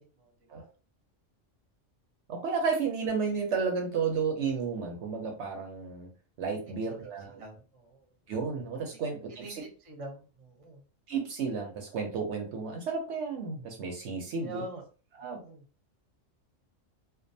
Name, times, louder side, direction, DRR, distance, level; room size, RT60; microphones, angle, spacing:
voice 1, 0.1-0.7 6.8-6.9 7.3-8.2 8.9-10.8 14.4-14.8 15.2-15.6, right 2 dB, 35° right, 1 dB, 0.6 m, -46 dB
voice 2, 2.3-6.1 6.4-7.4 8.3-9.4 11.1-14.6 15.2-15.4, right 5 dB, 70° right, 2 dB, 0.8 m, -32 dB
2.4 x 2.3 x 2.6 m, 0.37 s
omnidirectional pair, 1.3 m